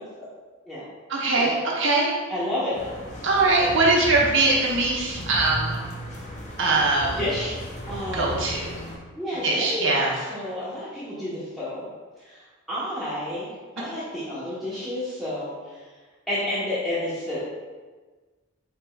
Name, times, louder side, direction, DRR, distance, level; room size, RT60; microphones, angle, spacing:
voice 1, 1.1-2.1 3.2-5.8 6.6-7.2 8.1-8.7 9.4-10.2, right 3 dB, 65° right, -3 dB, 1.0 m, -22 dB
voice 2, 2.3-2.8 5.0-5.1 6.6-6.8 7.2-7.5 7.9-8.4 9.1-9.9 10.1-11.9 12.2-12.4 12.7-13.5 13.8-15.8 16.3-17.4, left 1 dB, ahead, -12 dB, 0.9 m, -30 dB
sound 1, 2.7-9.0, left 1 dB, 35° left, 0.7 m, -36 dB
4.7 x 4.5 x 2.3 m, 1.3 s
head